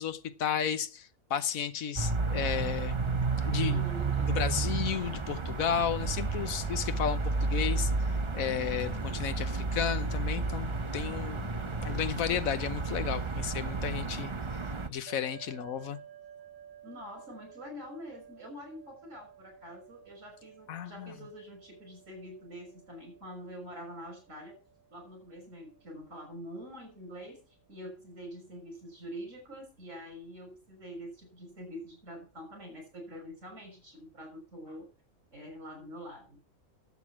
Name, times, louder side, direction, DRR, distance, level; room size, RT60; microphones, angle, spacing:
voice 1, 0.0-3.0 3.4-3.8 4.3-7.9 8.3-14.6 14.9-16.0 20.7-21.1, left 8 dB, 85° left, 1.3 m, -33 dB
sound 1, 2.0-14.9, right 4 dB, 25° right, 0.7 m, -32 dB
voice 2, 3.6-4.4 16.8-24.6 24.9-34.9 35.3-36.4, equal, 65° right, 6.7 m, -45 dB
sound 2, 15.1-27.6, right 8 dB, 10° right, 3.6 m, -55 dB
12.0 x 8.3 x 6.0 m
omnidirectional pair, 1.4 m